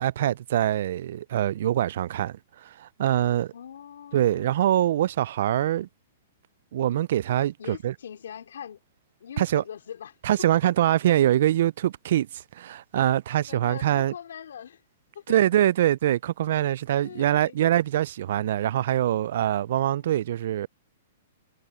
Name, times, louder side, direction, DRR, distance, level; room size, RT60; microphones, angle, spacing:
voice 1, 0.0-3.5 4.1-5.9 6.7-7.9 9.4-9.6 10.2-12.3 12.5-14.1 15.3-20.7, right 12 dB, 65° right, 0.3 m, -24 dB
voice 2, 3.5-4.5 7.6-8.8 9.2-10.5 13.5-14.8 15.1-15.2 17.0-17.6 19.9-20.2, left 8 dB, 85° left, 4.1 m, -42 dB
hypercardioid pair, 145°, 0 cm